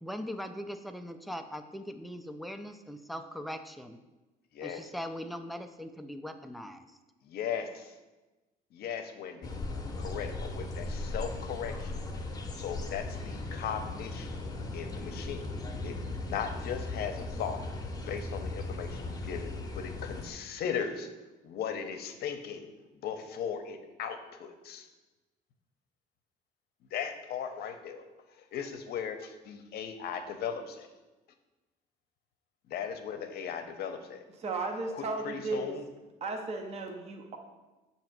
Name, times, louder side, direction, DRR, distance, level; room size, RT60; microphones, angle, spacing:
voice 1, 0.0-4.0 4.6-6.8, equal, ahead, 7 dB, 0.4 m, -40 dB
voice 2, 7.2-7.9 8.7-9.5 10.0-11.9 12.6-14.4 14.7-15.6 15.8-17.6 18.1-21.1 21.4-22.7 23.0-24.9 26.9-28.0 28.5-30.9 32.7-34.2 34.9-35.8, left 7 dB, 70° left, 7 dB, 0.7 m, -37 dB
sound 1, 9.4-20.3, left 2 dB, 25° left, 0.8 m, -38 dB
voice 3, 34.4-35.8 36.2-37.4, right 3 dB, 40° right, 3 dB, 0.7 m, -35 dB
6.7 x 2.9 x 5.8 m, 1.1 s
cardioid pair, 110°, 17 cm